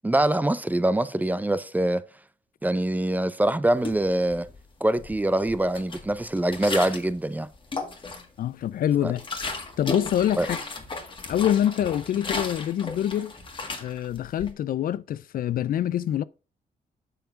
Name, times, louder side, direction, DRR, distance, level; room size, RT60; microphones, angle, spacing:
voice 1, 0.0-2.0 2.6-4.5 4.8-7.5 9.0-9.1 10.4-10.5, right 1 dB, 10° right, 0.6 m, -24 dB
sound 1, 3.8-4.6 5.0-7.2 7.5-8.4 8.8-14.5, left 3 dB, 30° left, 1.7 m, -35 dB
voice 2, 8.4-9.2 9.8-10.6 11.3-13.3 13.8-16.2, left 11 dB, 65° left, 0.4 m, -25 dB
6.9 x 5.9 x 5.2 m
cardioid pair, 110°, 16 cm